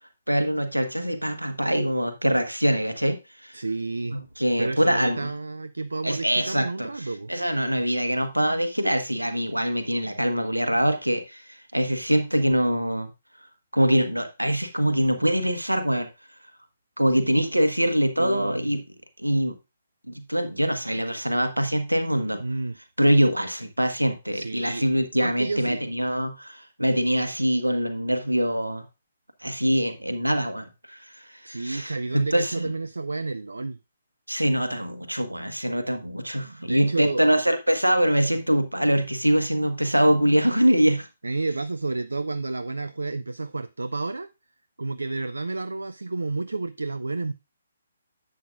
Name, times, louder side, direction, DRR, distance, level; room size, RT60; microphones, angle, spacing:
voice 1, 0.3-3.5 4.1-5.3 6.0-13.1 13.7-16.1 17.0-18.8 19.2-19.5 20.1-22.4 23.0-28.8 29.4-32.7 34.3-41.1, equal, 85° right, 1.2 m, -24 dB
voice 2, 3.5-4.2 4.6-7.3 17.1-17.4 18.2-18.7 22.4-22.8 24.3-24.8 25.1-25.8 31.4-33.8 36.4-37.2 41.2-44.3 44.8-47.3, right 3 dB, 70° right, 0.4 m, -30 dB
11.0 x 7.7 x 2.4 m
figure-of-eight pair, 135°, 0 cm